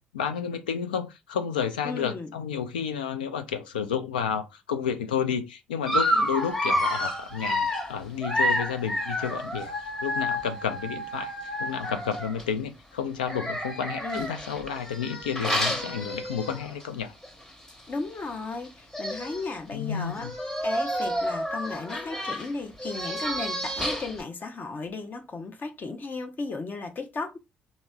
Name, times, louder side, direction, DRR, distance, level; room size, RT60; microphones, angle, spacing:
voice 1, 0.0-11.3 11.6-17.1 19.7-20.3, left 7 dB, 90° left, 0.3 m, -31 dB
voice 2, 1.8-2.3 14.0-14.3 17.9-20.3 20.6-27.4, left 3 dB, 40° left, 0.6 m, -35 dB
Dog, 5.9-12.4 13.2-16.8 17.2-17.4 17.7-17.8 18.6-18.7 18.9-19.5 20.1-24.2, equal, 15° left, 1.0 m, -29 dB
3.1 x 2.7 x 2.2 m
hypercardioid pair, 50°, 5 cm